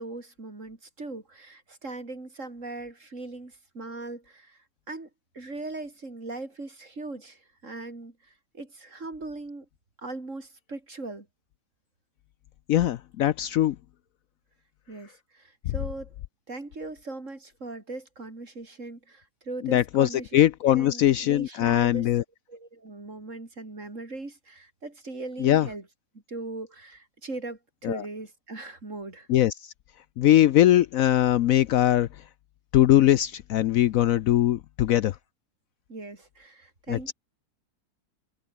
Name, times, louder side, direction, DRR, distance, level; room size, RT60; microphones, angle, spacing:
voice 1, 0.0-4.6 4.9-5.1 5.3-9.7 10.0-11.3 14.9-16.1 16.5-20.3 20.6-25.9 26.3-29.3 35.9-37.1, right 2 dB, 50° right, 4.4 m, -39 dB
voice 2, 12.7-13.8 19.6-22.2 25.4-25.7 27.8-28.0 29.3-29.5 30.2-32.1 32.7-35.1 36.9-37.1, left 12 dB, 70° left, 0.9 m, -21 dB
omnidirectional pair, 1.7 m